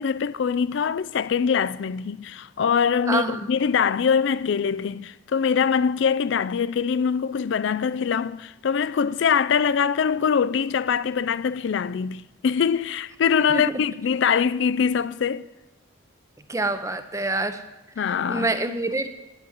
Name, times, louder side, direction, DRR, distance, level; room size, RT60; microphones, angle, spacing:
voice 1, 0.0-15.5 18.0-18.5, left 6 dB, 60° left, 0.4 m, -23 dB
voice 2, 3.1-3.5 13.5-13.6 16.5-17.6 18.1-19.1, right 2 dB, 15° right, 0.7 m, -26 dB
9.4 x 7.9 x 9.2 m
head